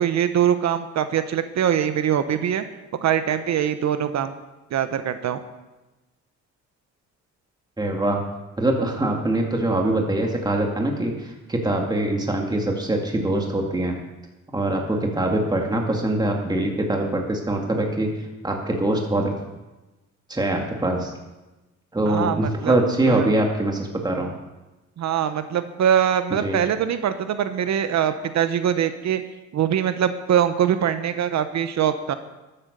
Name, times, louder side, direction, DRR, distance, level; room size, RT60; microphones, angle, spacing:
voice 1, 0.0-2.6 3.0-4.3 4.7-5.4 22.0-22.7 23.1-23.3 25.0-29.2 29.5-32.1, right 9 dB, 65° right, 10 dB, 0.9 m, -23 dB
voice 2, 7.8-8.2 8.6-14.0 14.5-19.3 20.3-21.1 21.9-24.3 26.4-26.6, right 1 dB, 15° right, 1 dB, 2.2 m, -23 dB
13.0 x 8.8 x 6.7 m, 1.1 s
cardioid pair, 90°, 30 cm